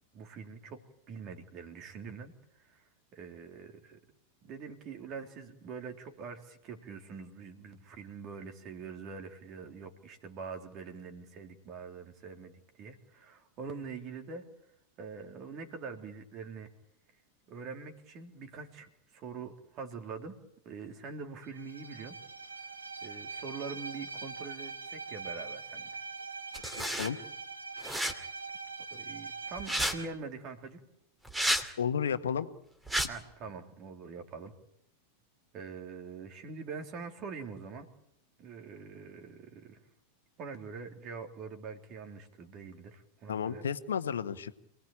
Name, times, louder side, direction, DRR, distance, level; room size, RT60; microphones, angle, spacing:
voice 1, 0.1-0.8 1.1-2.3 2.6-2.8 3.1-4.0 4.4-14.4 15.0-16.7 17.5-20.4 20.7-22.2 23.0-26.0 28.9-30.8 33.1-34.5 35.5-37.9 38.4-39.8 40.4-43.6, right 5 dB, 35° right, 5 dB, 3.6 m, -44 dB
Bowed string instrument, 21.5-30.2, right 4 dB, 75° right, 1.7 m, -43 dB
sound 1, 26.5-27.1 27.8-28.1 29.6-29.9 31.2-31.7 32.9-33.1, equal, 5° right, 2.6 m, -30 dB
voice 2, 26.8-27.2 31.8-32.5 43.3-44.6, left 7 dB, 65° left, 11 dB, 1.5 m, -32 dB
27.5 x 18.5 x 8.8 m, 0.76 s
figure-of-eight pair, 90°, 0 cm